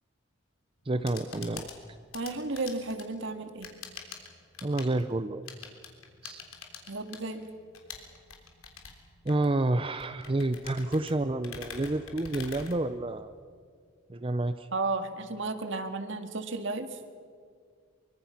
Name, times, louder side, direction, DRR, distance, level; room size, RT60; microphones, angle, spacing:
sound 1, 0.8-13.4, left 6 dB, 80° left, 3.5 m, -46 dB
voice 1, 0.9-1.7 4.6-5.4 6.2-6.4 9.2-13.3 14.1-14.7, right 2 dB, 25° right, 11 dB, 0.6 m, -29 dB
voice 2, 2.1-3.7 6.9-7.5 14.7-16.9, right 3 dB, 60° right, 7 dB, 2.0 m, -33 dB
25.0 x 24.5 x 5.8 m, 2.1 s
head